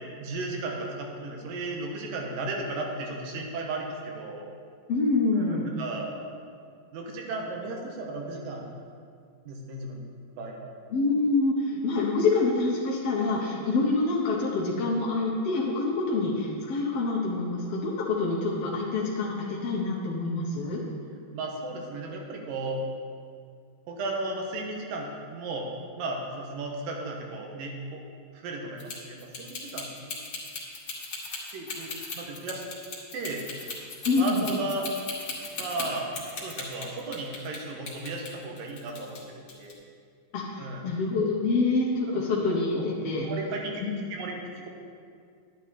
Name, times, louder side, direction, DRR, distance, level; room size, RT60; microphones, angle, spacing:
voice 1, 0.2-4.4 5.3-6.1 6.9-8.7 9.5-10.0 10.4-10.7 21.3-22.8 23.9-25.7 26.0-28.0 28.3-30.2 31.5-32.6 33.1-33.4 34.2-34.9 35.6-36.1 36.4-39.8 40.6-40.9 42.1-42.4 42.7-42.8 43.2-43.8 44.1-44.7, right 2 dB, 80° right, 0 dB, 2.9 m, -35 dB
voice 2, 4.9-5.7 10.9-20.8 34.1-34.4 40.3-43.3 43.8-43.9, left 3 dB, 60° left, -5 dB, 1.7 m, -26 dB
sound 1, 28.8-37.6 37.9-39.2 39.5-39.7, left 4 dB, 45° left, 2.3 m, -37 dB
11.0 x 9.8 x 4.2 m, 2.2 s
omnidirectional pair, 3.9 m